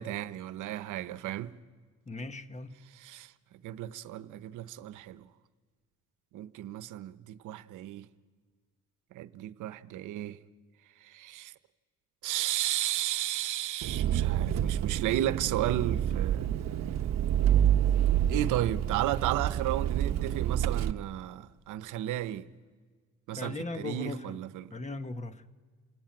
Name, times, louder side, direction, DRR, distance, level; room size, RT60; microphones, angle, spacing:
voice 1, 0.0-1.5 3.0-3.3 3.6-5.2 6.3-8.1 9.1-10.4 11.0-11.5 12.2-16.5 18.3-22.5 23.3-24.7, right 13 dB, 85° right, 0.9 m, -33 dB
voice 2, 2.1-2.8 23.4-24.4 24.7-25.5, left 3 dB, 25° left, 1.2 m, -38 dB
Engine, 13.8-20.9, right 10 dB, 60° right, 0.9 m, -28 dB
29.0 x 18.5 x 8.8 m
cardioid pair, 90°, 30 cm